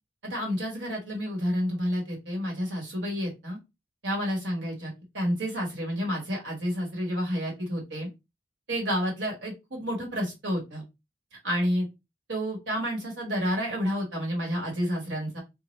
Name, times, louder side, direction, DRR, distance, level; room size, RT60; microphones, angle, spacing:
voice 1, 0.2-3.6 4.0-8.1 8.7-10.8 11.4-11.9 12.3-15.4, equal, 85° right, -1 dB, 1.6 m, -30 dB
2.8 x 2.3 x 3.1 m, 0.24 s
head